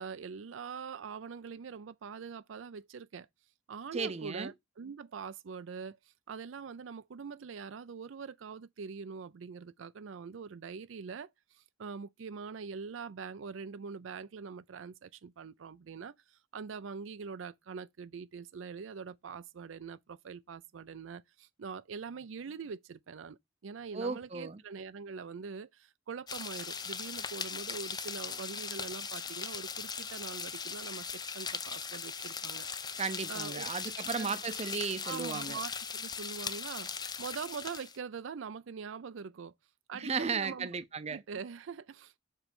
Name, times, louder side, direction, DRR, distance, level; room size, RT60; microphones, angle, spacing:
voice 1, 0.0-3.3 3.7-32.7 33.3-33.7 34.2-34.4 35.0-39.5 39.9-40.7 41.1-42.2, right 5 dB, 80° right, 0.5 m, -43 dB
voice 2, 3.9-4.5 23.9-24.6 33.0-35.6 39.9-41.2, right 5 dB, 35° right, 0.6 m, -35 dB
sound 1, 26.3-38.0, left 6 dB, 20° left, 0.5 m, -39 dB
7.3 x 3.2 x 5.3 m
head